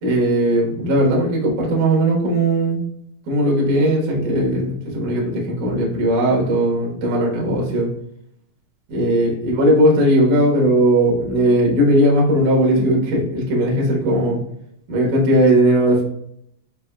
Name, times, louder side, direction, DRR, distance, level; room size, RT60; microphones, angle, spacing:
voice 1, 0.0-2.8 3.3-7.9 8.9-14.4 14.9-16.0, right 1 dB, 80° right, -3 dB, 1.8 m, -18 dB
7.5 x 2.9 x 2.3 m, 0.71 s
omnidirectional pair, 5.7 m